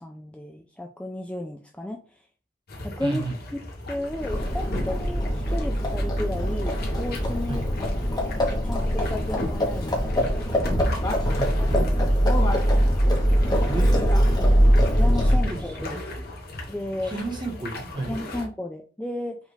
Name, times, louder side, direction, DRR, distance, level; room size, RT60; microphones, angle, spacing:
voice 1, 0.0-2.0 2.8-3.2 3.9-7.7 8.6-10.9 11.6-12.4 15.0-16.0 16.7-17.1 18.1-19.4, left 1 dB, 5° left, 2 dB, 0.4 m, -33 dB
sound 1, 2.7-18.4, left 1 dB, 55° left, 1.1 m, -36 dB
voice 2, 3.0-3.4 7.5-7.7 11.3-11.5 13.6-14.6 15.2-16.1 17.0-18.2, right 3 dB, 25° right, 1 dB, 1.1 m, -33 dB
Livestock farm animals working animals, 4.0-15.7, equal, 20° left, 0.9 m, -22 dB
5.3 x 2.5 x 3.2 m, 0.37 s
head